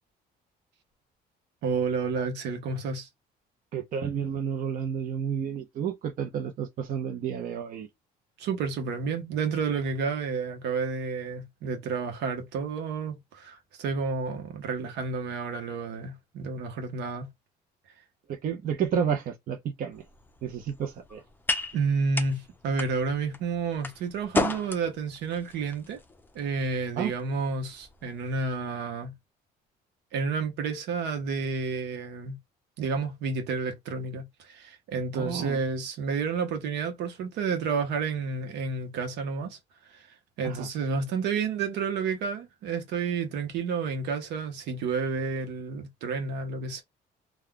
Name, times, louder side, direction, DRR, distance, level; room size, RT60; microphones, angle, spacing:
voice 1, 1.6-3.1 8.4-17.3 21.7-26.0 26.3-29.1 30.1-32.4 32.8-39.6 39.9-40.1 40.4-46.8, right 5 dB, 85° right, 0.9 m, -30 dB
voice 2, 3.7-7.9 18.3-20.0 20.4-21.2 27.0-27.1 35.1-35.6 40.4-40.7, right 7 dB, 55° right, 0.7 m, -31 dB
sound 1, 19.9-28.3, left 3 dB, 10° left, 0.5 m, -36 dB
2.3 x 2.3 x 3.6 m
cardioid pair, 110°, 17 cm